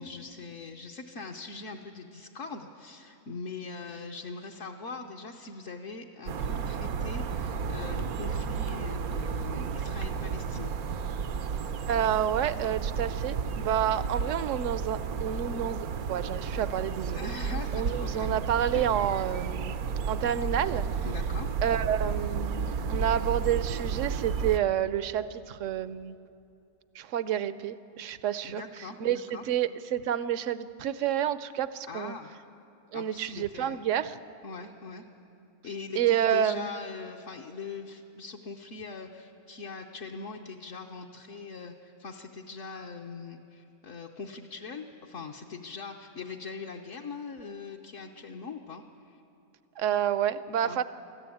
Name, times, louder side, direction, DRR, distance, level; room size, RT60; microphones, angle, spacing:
voice 1, 0.0-10.8 17.1-18.4 18.7-19.0 21.0-21.6 28.4-29.4 31.9-32.3 32.9-33.8 34.4-35.0 35.6-49.2 50.6-50.8, left 4 dB, 60° left, 0 dB, 1.2 m, -41 dB
sound 1, 6.3-24.6, right 6 dB, 80° right, 1.3 m, -32 dB
voice 2, 11.9-17.2 17.7-19.8 20.1-20.9 21.6-26.2 26.9-28.6 29.0-32.1 32.9-34.2 36.0-36.7 49.8-50.8, right 10 dB, 65° right, 14 dB, 1.0 m, -29 dB
24.0 x 14.5 x 8.5 m, 2.7 s
omnidirectional pair, 1.5 m